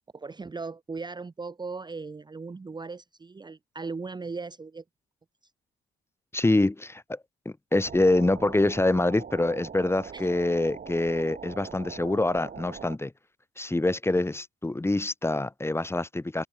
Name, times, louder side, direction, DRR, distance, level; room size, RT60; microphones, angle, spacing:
voice 1, 0.1-4.8 10.1-10.2, right 4 dB, 20° right, 0.9 m, -38 dB
voice 2, 6.3-13.1 13.6-16.5, left 2 dB, 10° left, 2.0 m, -25 dB
sound 1, 7.8-13.0, right 7 dB, 45° right, 3.6 m, -42 dB
cardioid pair, 90°, 20 cm